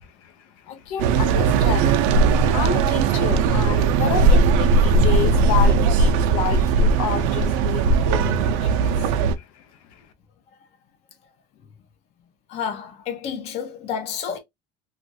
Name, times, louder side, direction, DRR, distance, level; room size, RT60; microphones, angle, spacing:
voice 1, 0.0-10.1, left 7 dB, 80° left, 0.7 m, -31 dB
sound 1, 1.0-9.3, right 4 dB, 80° right, 0.5 m, -18 dB
voice 2, 12.5-14.4, left 7 dB, 40° left, 0.6 m, -30 dB
3.0 x 2.4 x 2.7 m
cardioid pair, 175°, 17 cm